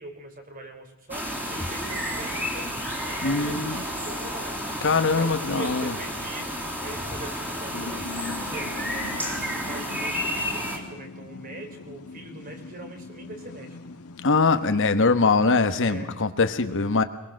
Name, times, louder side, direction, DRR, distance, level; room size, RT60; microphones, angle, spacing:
voice 1, 0.0-2.7 3.0-4.6 5.1-8.1 8.4-13.8 14.5-14.8 15.8-16.1, right 2 dB, 40° right, 5 dB, 3.8 m, -42 dB
sound 1, 1.1-10.8, equal, 10° right, 3.8 m, -31 dB
voice 2, 3.2-3.8 4.8-5.9 14.2-17.0, left 4 dB, 60° left, 9 dB, 1.3 m, -22 dB
sound 2, 7.7-14.7, left 4 dB, 80° left, 1.5 m, -41 dB
23.5 x 21.0 x 6.5 m, 0.95 s
head